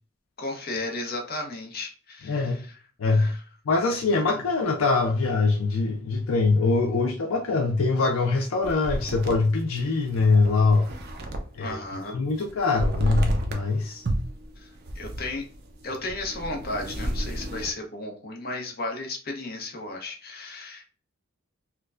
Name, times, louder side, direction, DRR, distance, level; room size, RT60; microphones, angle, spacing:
voice 1, 0.4-2.8 3.1-3.4 11.6-12.2 14.6-14.7 14.9-15.4 15.8-20.8, left 2 dB, 45° left, 0.8 m, -34 dB
voice 2, 2.3-2.6 3.0-3.3 3.7-10.9 11.6-11.8 12.1-14.0, left 3 dB, 75° left, 0.5 m, -23 dB
sound 1, 8.6-11.7 12.0-13.7 14.0-17.7, right 1 dB, 50° right, 0.6 m, -31 dB
4.4 x 2.2 x 2.4 m
head